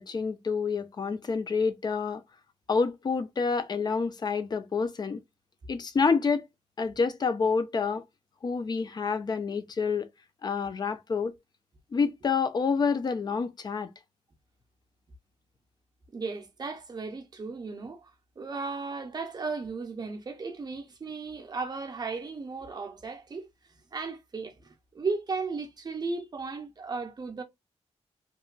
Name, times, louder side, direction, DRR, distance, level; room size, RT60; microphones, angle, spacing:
voice 1, 0.0-2.2 2.7-5.2 5.7-6.5 6.8-8.0 8.4-10.1 10.4-11.3 11.9-13.9, left 5 dB, 35° left, 0.4 m, -28 dB
voice 2, 16.1-18.1 18.4-27.4, right 4 dB, 35° right, 0.5 m, -35 dB
2.9 x 2.1 x 2.4 m
wide cardioid pair, 145°, 12 cm